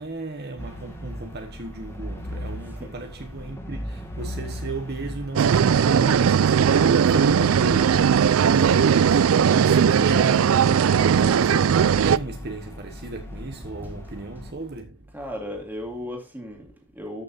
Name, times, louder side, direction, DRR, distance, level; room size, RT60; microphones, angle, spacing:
voice 1, 0.0-15.1, right 2 dB, 50° right, 1.2 m, -34 dB
sound 1, 0.6-14.5, left 1 dB, 10° left, 1.9 m, -38 dB
sound 2, 5.4-12.2, right 7 dB, 75° right, 0.4 m, -18 dB
voice 2, 15.1-17.2, left 1 dB, 10° right, 2.5 m, -35 dB
13.5 x 6.4 x 2.7 m
head